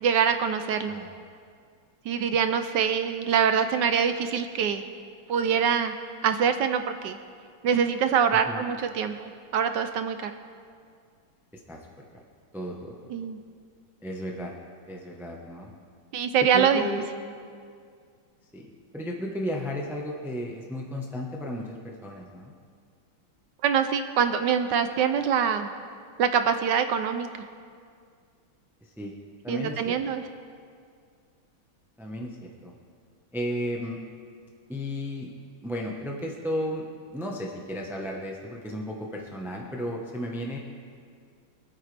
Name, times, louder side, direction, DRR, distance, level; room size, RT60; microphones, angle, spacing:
voice 1, 0.0-1.0 2.1-4.8 5.3-5.9 6.2-7.2 7.6-10.3 13.1-13.4 16.1-16.8 23.6-25.7 26.2-27.3 29.5-30.2, right 7 dB, 70° right, 8 dB, 1.1 m, -24 dB
voice 2, 11.7-12.0 12.5-13.1 14.0-14.5 14.9-15.7 16.5-17.0 18.5-18.7 18.9-22.5 28.8-29.1 29.4-30.0 32.0-32.7 33.3-34.0 34.7-35.3 35.6-36.8 37.1-40.6, equal, ahead, -1 dB, 0.5 m, -34 dB
25.0 x 9.1 x 3.4 m, 2.2 s
omnidirectional pair, 2.3 m